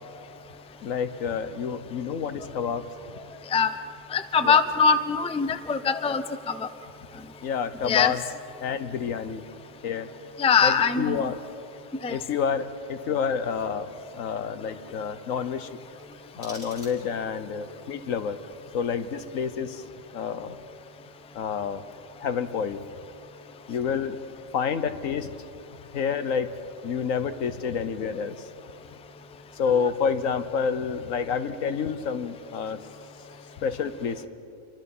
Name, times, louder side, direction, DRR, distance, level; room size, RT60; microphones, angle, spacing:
voice 1, 0.8-2.9 4.4-4.6 7.4-8.2 8.6-9.4 9.8-10.1 10.6-11.4 12.1-15.7 16.3-18.4 18.7-19.8 20.1-20.6 21.3-21.8 22.2-22.8 23.7-24.2 24.5-25.3 25.9-26.5 26.8-28.5 29.5-32.8 33.6-34.3, left 6 dB, 80° left, 11 dB, 1.4 m, -28 dB
voice 2, 4.1-6.7 7.8-8.1 10.4-11.3 12.0-12.2, left 5 dB, 5° left, 10 dB, 0.5 m, -22 dB
sound 1, 16.0-17.4, left 1 dB, 65° left, 5.4 m, -47 dB
29.0 x 24.0 x 5.5 m, 2.7 s
omnidirectional pair, 1.4 m